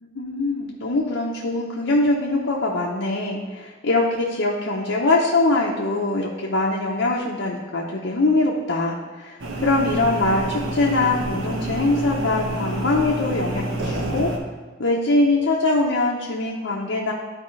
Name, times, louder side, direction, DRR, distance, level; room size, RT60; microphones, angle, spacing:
voice 1, 0.1-14.3 14.8-17.1, left 2 dB, 75° left, -3 dB, 0.9 m, -22 dB
sound 1, 9.4-14.4, right 1 dB, 80° right, 1.0 m, -28 dB
12.0 x 4.6 x 3.2 m, 1.3 s
head